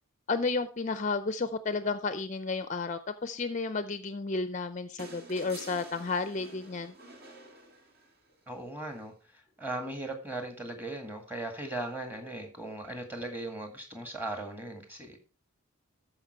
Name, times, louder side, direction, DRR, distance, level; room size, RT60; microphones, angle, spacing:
voice 1, 0.3-6.9, left 4 dB, 35° left, 12 dB, 0.5 m, -32 dB
sound 1, 5.0-8.3 9.8-9.9, right 2 dB, 45° right, 2.1 m, -49 dB
voice 2, 8.5-15.2, right 2 dB, 10° right, 4 dB, 1.9 m, -38 dB
13.5 x 5.3 x 4.5 m, 0.34 s
head